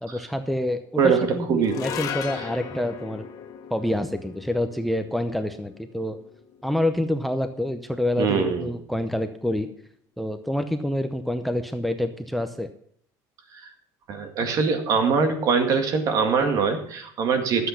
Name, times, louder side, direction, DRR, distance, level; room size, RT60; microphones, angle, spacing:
voice 1, 0.0-3.3 3.7-6.2 6.6-9.7 10.2-12.7, left 1 dB, ahead, 9 dB, 0.7 m, -27 dB
voice 2, 1.0-1.8 8.2-8.7 13.6-13.7 14.1-17.7, right 5 dB, 50° right, 6 dB, 2.0 m, -22 dB
sound 1, 1.6-8.1, left 8 dB, 55° left, 1.6 m, -38 dB
12.5 x 8.0 x 5.8 m, 0.64 s
cardioid pair, 140°, 7 cm